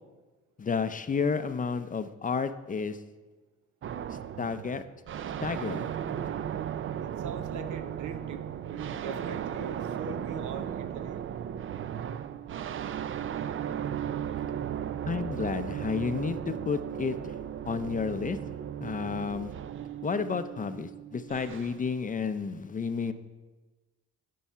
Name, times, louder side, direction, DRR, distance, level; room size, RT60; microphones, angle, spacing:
voice 1, 0.6-3.0 4.4-4.8 5.4-5.9 15.1-17.3 17.6-18.4 18.8-19.5 20.0-23.1, left 5 dB, 25° left, 10 dB, 0.5 m, -31 dB
sound 1, 3.8-21.9, right 9 dB, 45° right, 0.4 m, -36 dB
voice 2, 7.0-11.2, right 4 dB, 80° right, 9 dB, 0.9 m, -41 dB
11.5 x 4.7 x 5.6 m, 1.2 s
cardioid pair, 90°, 30 cm